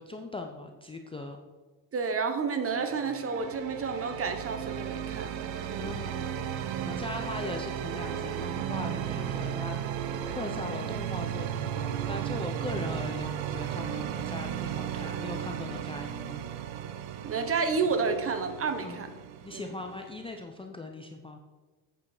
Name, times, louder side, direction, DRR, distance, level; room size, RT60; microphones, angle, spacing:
voice 1, 0.0-1.4 5.8-6.3 6.8-16.4 18.8-19.0 19.4-21.4, left 2 dB, 10° left, 3 dB, 0.5 m, -39 dB
voice 2, 1.9-5.4 5.7-6.0 17.2-19.1 19.5-19.7, right 5 dB, 30° right, 8 dB, 1.0 m, -30 dB
sound 1, 2.6-20.4, right 9 dB, 65° right, 0.9 m, -35 dB
8.6 x 6.7 x 4.8 m, 1.3 s
cardioid pair, 130°, 49 cm